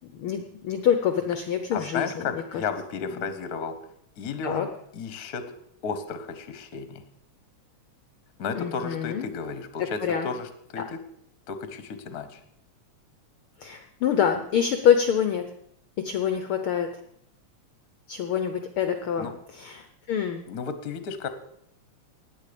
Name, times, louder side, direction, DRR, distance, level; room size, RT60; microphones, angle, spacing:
voice 1, 0.2-2.6 3.2-3.3 4.4-4.7 8.5-9.3 9.8-10.3 10.8-10.9 13.6-15.4 16.0-16.9 18.1-20.4, left 8 dB, 75° left, 8 dB, 1.2 m, -26 dB
voice 2, 1.7-3.7 4.2-5.4 5.8-7.0 8.4-11.0 11.5-12.4 19.2-19.3 20.5-21.3, left 5 dB, 55° left, 9 dB, 1.0 m, -33 dB
16.5 x 10.0 x 5.2 m, 0.73 s
omnidirectional pair, 3.4 m